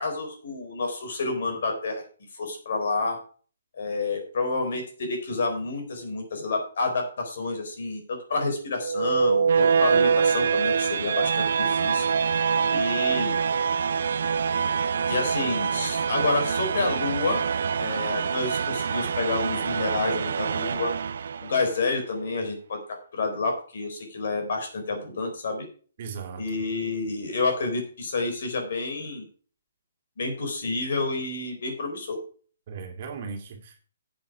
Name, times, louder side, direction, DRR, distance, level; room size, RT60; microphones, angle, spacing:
voice 1, 0.0-2.0 2.3-3.2 3.7-12.1 12.7-13.4 15.1-17.4 17.8-20.9 21.4-25.7 26.4-29.3 30.2-32.2, left 3 dB, 55° left, 4 dB, 4.1 m, -29 dB
sound 1, 8.8-21.8, right 6 dB, 55° right, 0.4 m, -25 dB
voice 2, 26.0-26.4 32.7-33.8, right 5 dB, 35° right, 3 dB, 2.3 m, -37 dB
10.5 x 7.8 x 4.8 m, 0.41 s
hypercardioid pair, 170°, 0 cm